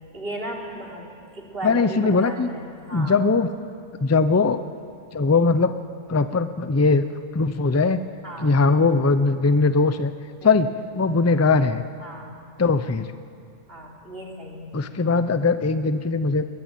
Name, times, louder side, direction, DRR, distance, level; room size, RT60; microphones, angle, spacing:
voice 1, 0.1-3.2 8.2-8.6 10.4-10.6 12.0-12.4 13.7-14.8, right 1 dB, 40° right, -1 dB, 3.5 m, -36 dB
voice 2, 1.6-2.5 2.9-3.5 4.0-4.6 5.1-5.8 6.1-7.0 7.3-8.0 8.4-10.1 10.4-10.7 10.9-11.8 12.6-13.1 14.7-16.5, left 4 dB, 20° left, 11 dB, 0.4 m, -20 dB
21.5 x 21.0 x 9.2 m, 2.4 s
omnidirectional pair, 1.5 m